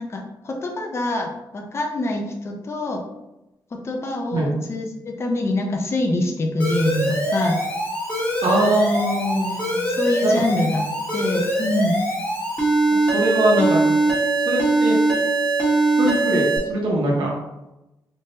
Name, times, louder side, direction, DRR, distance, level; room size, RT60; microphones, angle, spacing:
voice 1, 0.0-3.0 3.7-7.6 9.9-10.8 11.1-12.0, left 2 dB, 35° left, 2 dB, 0.5 m, -25 dB
Alarm, 6.6-16.6, right 2 dB, 15° left, 1.5 m, -22 dB
voice 2, 8.4-9.7 10.2-10.3 13.0-13.9 14.4-15.0 16.0-17.3, right 1 dB, 80° right, -2 dB, 1.2 m, -21 dB
3.5 x 3.2 x 2.7 m, 0.95 s
cardioid pair, 110°, 8 cm